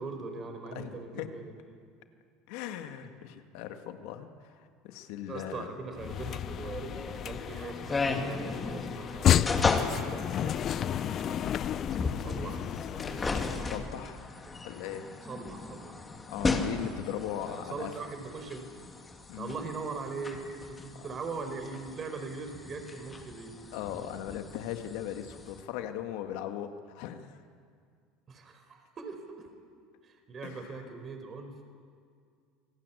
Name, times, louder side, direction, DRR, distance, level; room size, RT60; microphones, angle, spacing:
voice 1, 0.0-1.5 5.3-13.5 15.2-16.0 17.5-18.6 19.4-23.6 28.3-29.5 30.0-31.6, right 4 dB, 35° right, 6 dB, 4.5 m, -41 dB
voice 2, 0.7-1.3 2.5-5.7 6.0-6.1 13.6-14.3 14.6-15.1 16.3-17.9 19.3-19.5 23.7-27.4 30.4-30.8, left 11 dB, 70° left, 6 dB, 2.1 m, -39 dB
sound 1, 5.9-13.8, left 10 dB, 45° left, 0.6 m, -31 dB
sound 2, 6.9-25.6, left 3 dB, 20° left, 2.7 m, -36 dB
27.5 x 18.5 x 8.6 m, 2.1 s
supercardioid pair, 95°, 0 cm